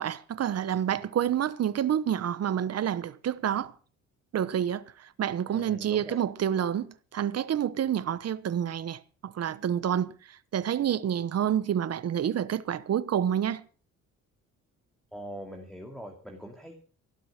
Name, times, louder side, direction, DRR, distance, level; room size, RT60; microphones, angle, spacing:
voice 1, 0.0-3.7 4.3-13.6, right 9 dB, 55° right, 1.1 m, -28 dB
voice 2, 5.5-6.2 15.1-16.8, equal, ahead, 2.5 m, -42 dB
17.5 x 7.8 x 6.5 m
cardioid pair, 90°, 30 cm